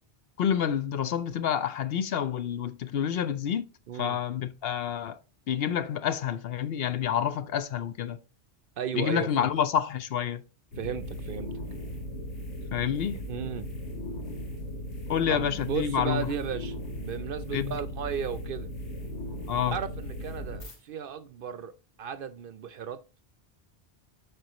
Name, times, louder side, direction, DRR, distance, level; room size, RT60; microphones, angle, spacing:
voice 1, 0.4-3.6 4.0-5.2 5.5-8.2 8.9-10.4 12.7-13.2 15.1-16.3 17.5-17.8 19.5-19.8, left 9 dB, 65° left, 0.8 m, -28 dB
voice 2, 3.9-4.2 8.8-9.5 10.8-11.5 13.3-13.7 15.3-16.7 17.0-18.7 19.7-21.7 22.0-23.0, right 7 dB, 60° right, 0.6 m, -35 dB
sound 1, 10.7-20.8, equal, 85° left, 2.1 m, -37 dB
7.7 x 4.8 x 3.0 m
omnidirectional pair, 1.1 m